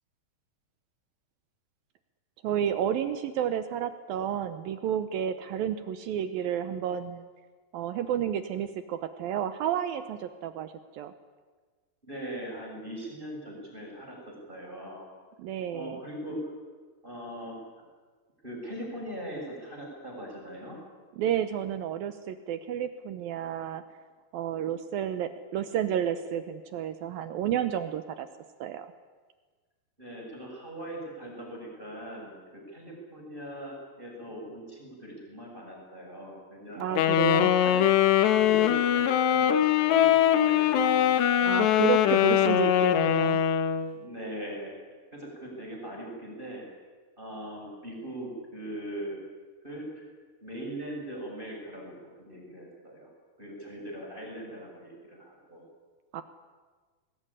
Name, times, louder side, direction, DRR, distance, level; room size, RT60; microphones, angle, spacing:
voice 1, 2.4-7.2 7.7-11.1 15.4-16.0 21.1-23.8 24.3-28.3 28.6-28.9 36.8-37.5 41.4-43.4 56.1-56.2, right 9 dB, 75° right, 11 dB, 2.4 m, -31 dB
voice 2, 12.0-15.1 15.7-16.4 17.0-17.6 18.4-20.8 30.0-37.0 37.6-37.8 38.4-41.2 41.9-42.5 43.9-44.8 45.1-46.7 47.2-49.2 49.6-50.1 50.4-53.1 53.4-55.6, right 1 dB, 10° right, -1 dB, 6.6 m, -40 dB
Wind instrument woodwind instrument, 37.0-43.9, left 10 dB, 85° left, 3.4 m, -22 dB
23.5 x 20.0 x 9.9 m, 1.4 s
omnidirectional pair, 4.8 m